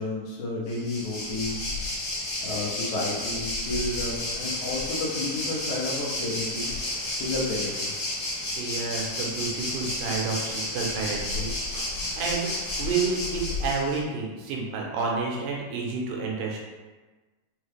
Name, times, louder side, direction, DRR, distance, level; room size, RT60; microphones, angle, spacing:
voice 1, 0.0-1.7 2.4-6.7 7.2-7.9, left 2 dB, 75° left, -5 dB, 2.0 m, -31 dB
Waves surf, 0.7-14.0, left 2 dB, 55° left, 1.5 m, -31 dB
voice 2, 8.6-11.9 12.2-16.7, right 4 dB, 85° right, -2 dB, 2.4 m, -30 dB
5.6 x 2.4 x 3.2 m, 1.3 s
omnidirectional pair, 3.8 m